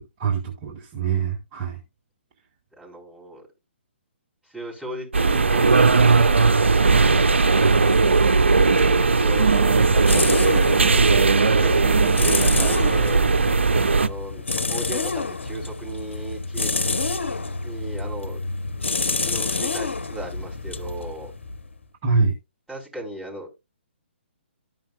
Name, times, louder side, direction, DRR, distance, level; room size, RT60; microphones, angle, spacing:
voice 1, 0.0-1.8 22.0-22.3, right 5 dB, 30° right, 1.4 m, -24 dB
voice 2, 2.8-3.4 4.5-6.7 8.6-13.3 14.0-16.7 17.6-18.4 19.2-21.3 22.7-23.5, right 1 dB, ahead, 4.7 m, -36 dB
sound 1, 5.1-14.1, right 4 dB, 80° right, 0.6 m, -18 dB
sound 2, 9.7-21.8, left 3 dB, 80° left, 0.9 m, -28 dB
13.0 x 5.4 x 2.5 m
figure-of-eight pair, 135°, 6 cm